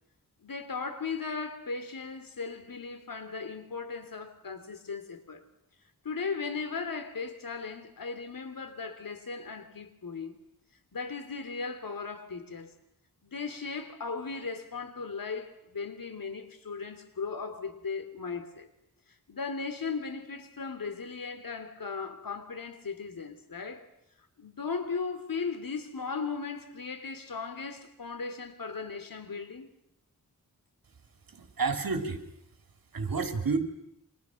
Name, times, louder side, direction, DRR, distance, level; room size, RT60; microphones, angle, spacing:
voice 1, 0.4-5.4 6.0-10.4 10.9-12.7 13.2-18.7 19.3-23.8 24.4-29.7, left 5 dB, 70° left, 3.2 m, -37 dB
voice 2, 31.3-32.2 32.9-33.6, right 4 dB, 75° right, 3.4 m, -30 dB
29.5 x 26.0 x 6.5 m
wide cardioid pair, 85°, 36 cm